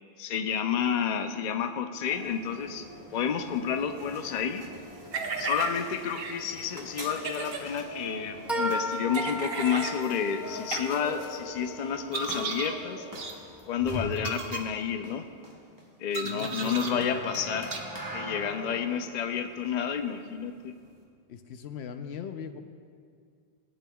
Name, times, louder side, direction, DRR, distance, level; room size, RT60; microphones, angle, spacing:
voice 1, 0.2-2.8 3.1-4.6 5.4-13.1 13.7-15.2 16.0-17.7 18.1-20.8, left 7 dB, 50° left, 7 dB, 0.6 m, -30 dB
sound 1, 1.4-1.8 8.5-14.2, left 2 dB, ahead, 0.3 m, -37 dB
sound 2, 2.0-21.0, right 1 dB, 20° right, 1.2 m, -43 dB
sound 3, 5.1-5.7 6.2-6.3 7.2-7.6 9.1-10.0 10.7-10.8 12.1-12.7 13.2-13.3 14.2-14.6 16.1-16.9 17.7-17.8, right 4 dB, 65° right, 0.9 m, -34 dB
voice 2, 16.2-17.4 21.3-22.6, left 7 dB, 90° left, 8 dB, 0.9 m, -39 dB
17.0 x 8.9 x 2.3 m, 2.2 s
omnidirectional pair, 1.1 m